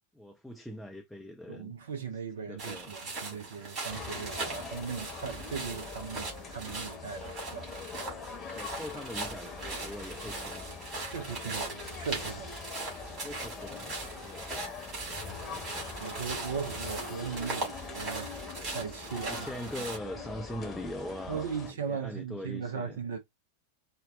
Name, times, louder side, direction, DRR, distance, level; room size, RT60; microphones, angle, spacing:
voice 1, 0.1-1.8 2.4-3.0 3.3-3.7 8.5-11.6 13.2-14.9 15.2-15.9 19.3-23.0, equal, ahead, 0.4 m, -43 dB
voice 2, 1.5-7.9 11.1-12.5 15.3-15.6 16.0-18.4 18.7-19.5 21.3-23.2, right 6 dB, 65° right, 0.5 m, -38 dB
sound 1, 2.6-20.0, right 3 dB, 35° right, 1.9 m, -40 dB
sound 2, 3.9-21.7, left 4 dB, 25° left, 0.8 m, -43 dB
4.0 x 2.1 x 2.3 m
figure-of-eight pair, 90°, 0 cm